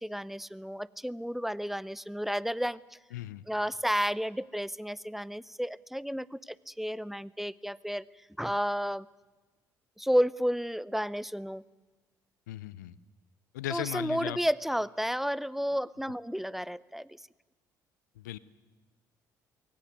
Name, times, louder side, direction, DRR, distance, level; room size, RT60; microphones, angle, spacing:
voice 1, 0.0-2.8 3.5-8.0 8.4-9.1 10.0-11.6 13.7-17.1, equal, 5° right, 20 dB, 0.7 m, -31 dB
voice 2, 3.1-3.4 12.5-13.0 13.5-14.4 18.2-18.4, left 14 dB, 85° left, 19 dB, 0.7 m, -37 dB
22.0 x 18.0 x 9.4 m, 1.2 s
hypercardioid pair, 55°, 9 cm